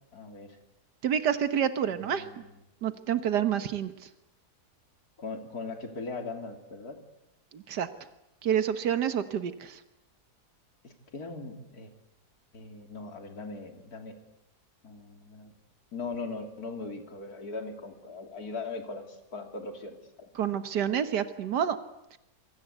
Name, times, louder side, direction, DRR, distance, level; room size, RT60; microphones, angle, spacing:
voice 1, 0.1-0.6 2.1-2.6 5.2-7.0 10.8-11.9 12.5-14.2 14.8-15.5 15.9-20.3, left 3 dB, 65° left, 5 dB, 3.5 m, -39 dB
voice 2, 1.0-2.3 2.8-4.1 7.5-7.9 8.4-9.8 20.4-21.8 22.1-22.2, right 9 dB, 90° right, 10 dB, 1.8 m, -28 dB
27.5 x 23.0 x 8.1 m, 0.90 s
omnidirectional pair, 1.7 m